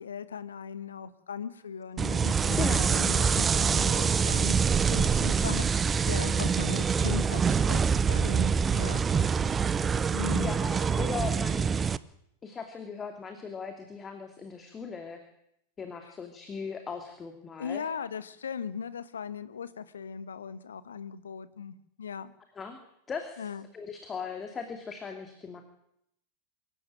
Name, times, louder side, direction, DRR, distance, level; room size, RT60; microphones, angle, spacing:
voice 1, 0.0-4.6 4.9-9.0 10.1-10.5 17.6-22.3 23.4-23.7, left 7 dB, 70° left, 14 dB, 1.5 m, -38 dB
sound 1, 2.0-12.0, right 6 dB, 20° right, 0.8 m, -25 dB
voice 2, 2.6-3.0 10.4-11.7 12.4-15.2 15.8-17.8 22.6-22.8 23.1-25.6, left 5 dB, 20° left, 6 dB, 2.6 m, -38 dB
25.0 x 14.5 x 9.1 m, 0.77 s
figure-of-eight pair, 90°, 0 cm